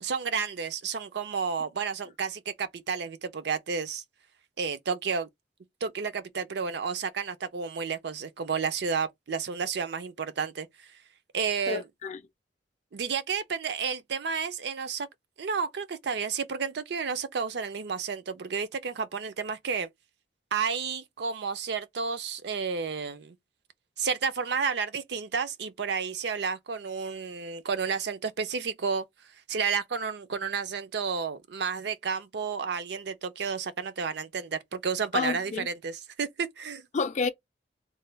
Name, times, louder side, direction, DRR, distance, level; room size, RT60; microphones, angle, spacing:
voice 1, 0.0-4.0 4.6-5.3 5.8-10.7 11.3-11.8 12.9-15.1 15.4-19.9 20.5-23.3 24.0-29.1 29.5-36.8, right 5 dB, 65° right, 0.5 m, -31 dB
voice 2, 11.7-12.2 35.1-35.7 36.9-37.3, left 4 dB, 40° left, 0.4 m, -29 dB
3.2 x 2.2 x 3.3 m
head